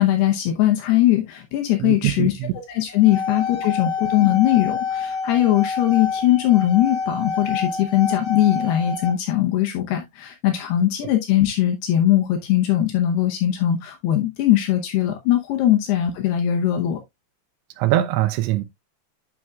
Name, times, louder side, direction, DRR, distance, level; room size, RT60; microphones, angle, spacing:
voice 1, 0.0-2.3 2.7-17.0, left 13 dB, 90° left, 2.2 m, -20 dB
voice 2, 1.8-2.5 17.8-18.6, right 14 dB, 85° right, 2.6 m, -22 dB
sound 1, 2.9-9.1, left 5 dB, 70° left, 4.6 m, -28 dB
9.1 x 6.1 x 2.3 m
omnidirectional pair, 5.9 m